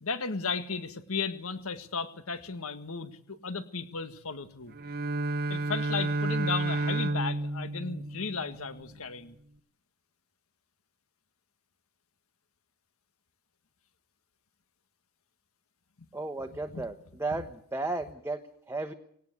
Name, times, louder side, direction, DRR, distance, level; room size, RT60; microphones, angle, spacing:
voice 1, 0.0-4.7 5.5-9.4 16.7-16.8 17.3-17.4, left 4 dB, 70° left, 10 dB, 1.8 m, -35 dB
Bowed string instrument, 4.7-8.8, right 2 dB, 45° right, 0.9 m, -31 dB
voice 2, 16.1-18.9, right 2 dB, 10° right, 6 dB, 1.2 m, -34 dB
19.5 x 18.0 x 8.3 m, 0.65 s
head